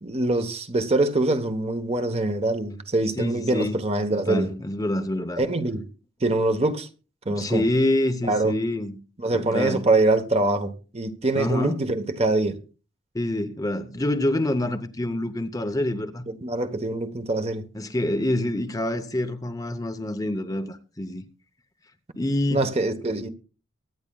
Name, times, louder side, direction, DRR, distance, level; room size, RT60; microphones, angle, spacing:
voice 1, 0.0-4.5 5.4-5.9 6.2-6.9 7.2-7.6 8.3-8.6 9.2-12.6 16.3-17.7 22.5-23.3, right 2 dB, 30° right, 1.1 m, -24 dB
voice 2, 3.2-3.8 4.1-5.4 7.3-9.0 9.3-9.8 11.4-11.8 13.1-16.3 17.7-21.2 22.2-22.6, left 1 dB, 15° left, 0.7 m, -26 dB
23.5 x 9.6 x 2.3 m
head